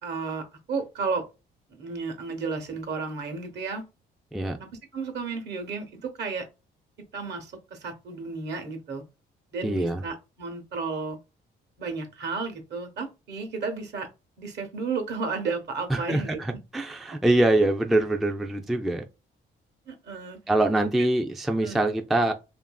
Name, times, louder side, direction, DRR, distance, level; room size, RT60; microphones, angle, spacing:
voice 1, 0.0-1.3 1.7-3.8 4.6-6.5 7.1-9.0 9.5-11.2 11.8-14.1 14.4-16.4 19.9-20.4 20.8-20.9 21.6-21.8, right 4 dB, 60° right, 0.9 m, -33 dB
voice 2, 9.6-10.0 15.9-19.0 20.5-22.3, right 1 dB, ahead, 0.3 m, -24 dB
2.7 x 2.5 x 2.2 m
cardioid pair, 90°, 20 cm